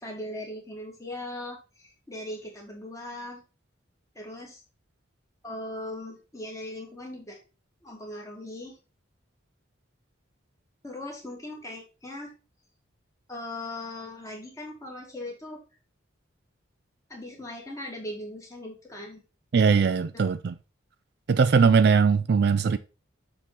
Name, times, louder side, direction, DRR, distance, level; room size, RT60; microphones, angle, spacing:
voice 1, 0.0-3.4 4.2-4.6 5.4-7.4 7.8-8.7 10.8-12.3 13.3-15.6 17.1-19.2, left 1 dB, 15° left, 1.9 m, -39 dB
voice 2, 19.5-20.6 21.3-22.8, right 5 dB, 55° right, 0.3 m, -20 dB
6.7 x 3.7 x 4.4 m
head